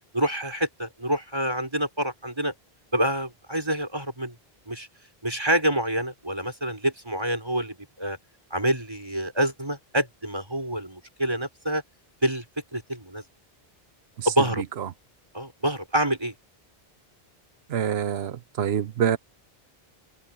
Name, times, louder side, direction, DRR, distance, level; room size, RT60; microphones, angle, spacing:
voice 1, 0.1-2.5 2.9-4.3 4.7-4.9 5.2-8.2 8.5-11.8 12.2-12.4 12.7-13.2 14.3-14.6 15.3-16.3, right 1 dB, 25° right, 5.2 m, -27 dB
voice 2, 17.7-19.2, right 9 dB, 90° right, 1.0 m, -25 dB
omnidirectional pair, 1.0 m